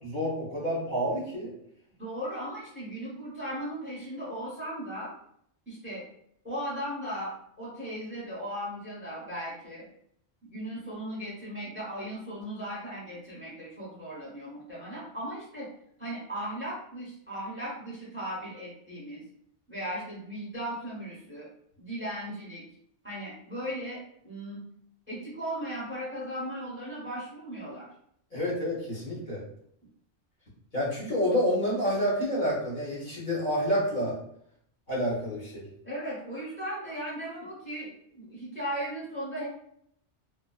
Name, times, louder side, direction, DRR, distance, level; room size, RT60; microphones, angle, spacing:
voice 1, 0.0-1.5 28.3-29.4 30.7-34.2 34.9-35.7, equal, 45° left, -6 dB, 0.9 m, -28 dB
voice 2, 2.0-5.1 5.7-6.0 6.4-9.9 10.4-15.7 16.0-19.2 19.7-21.5 21.8-22.6 23.0-24.6 25.1-27.9 35.8-39.5, equal, 10° right, -6 dB, 0.7 m, -37 dB
2.4 x 2.2 x 2.3 m, 0.69 s
omnidirectional pair, 1.2 m